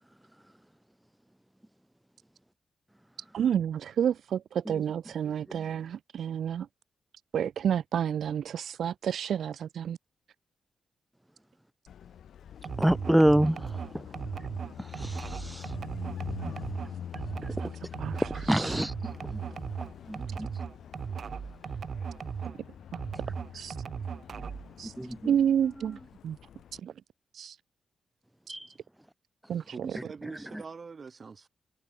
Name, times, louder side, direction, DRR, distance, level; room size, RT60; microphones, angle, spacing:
voice 1, 3.3-6.7 7.3-10.0 17.6-17.7 18.0-18.8 23.5-23.8 24.8-24.9 25.2-26.0 26.2-26.4 26.8-26.9 27.3-27.6 28.5-28.6 29.5-29.9, right 9 dB, 80° right, 0.7 m, -30 dB
Car passing by, 11.9-26.8, left 9 dB, 80° left, 0.8 m, -45 dB
sound 1, 12.6-22.6 22.9-24.7, right 6 dB, 60° right, 1.2 m, -37 dB
voice 2, 12.8-13.8 14.8-15.7 16.4-16.5 17.4-17.5 18.3-18.9 20.1-20.5 25.0-25.2 28.5-28.7, right 1 dB, 5° right, 0.3 m, -26 dB
voice 3, 29.6-31.5, right 5 dB, 45° right, 6.4 m, -43 dB
cardioid pair, 90°, 0 cm